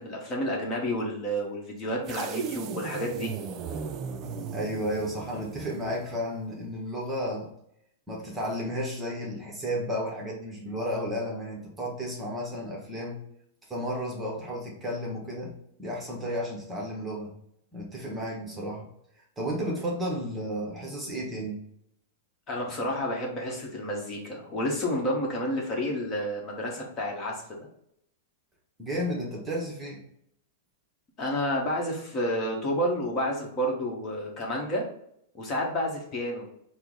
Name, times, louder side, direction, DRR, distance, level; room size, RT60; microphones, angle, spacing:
voice 1, 0.0-3.3 22.5-27.6 31.2-34.9 35.3-36.5, equal, 30° left, -1 dB, 1.0 m, -30 dB
sound 1, 2.1-6.3, right 6 dB, 35° right, 0.4 m, -37 dB
voice 2, 4.5-7.5 8.1-13.2 13.7-15.5 15.8-17.3 17.7-18.9 19.4-21.6 28.8-30.0, equal, 10° right, -2 dB, 0.9 m, -33 dB
4.4 x 2.0 x 3.8 m, 0.72 s
hypercardioid pair, 135°, 0 cm